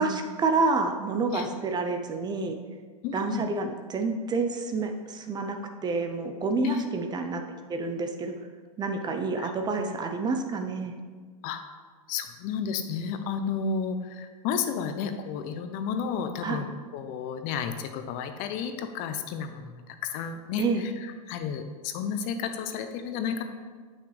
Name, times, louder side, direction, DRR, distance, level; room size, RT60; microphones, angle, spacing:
voice 1, 0.0-2.6 3.1-7.4 7.7-8.3 8.8-10.9 16.4-16.7 20.6-20.9, right 3 dB, 20° right, 5 dB, 0.6 m, -28 dB
voice 2, 3.0-3.4 6.6-6.8 9.4-9.5 11.4-11.6 12.1-19.7 20.0-20.6 21.0-23.4, left 6 dB, 45° left, 8 dB, 0.7 m, -32 dB
8.3 x 6.0 x 3.3 m, 1.6 s
hypercardioid pair, 120°, 19 cm